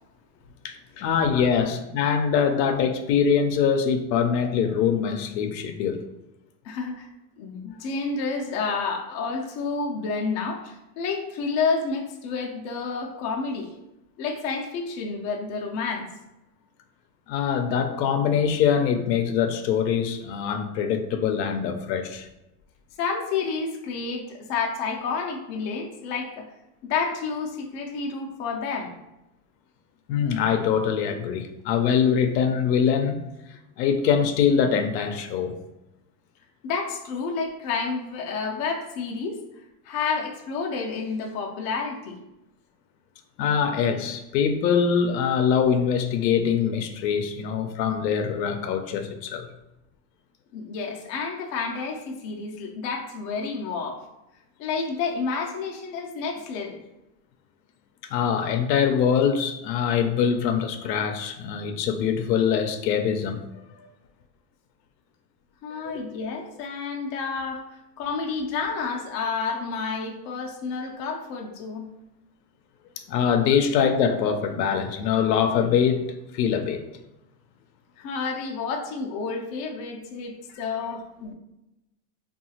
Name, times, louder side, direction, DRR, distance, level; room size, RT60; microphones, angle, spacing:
voice 1, 0.6-6.0 17.3-22.3 30.1-33.2 33.8-35.5 43.4-49.5 58.1-63.4 65.9-66.1 73.1-76.1 76.3-76.8, left 7 dB, 80° left, 7 dB, 0.6 m, -23 dB
voice 2, 6.6-7.1 7.4-13.7 14.2-16.1 23.0-26.5 26.8-28.9 36.6-39.4 39.8-42.2 50.5-54.0 54.6-56.8 65.6-71.9 78.0-81.3, left 4 dB, 35° left, 0 dB, 0.4 m, -30 dB
2.7 x 2.4 x 2.8 m, 0.92 s
supercardioid pair, 120°, 49 cm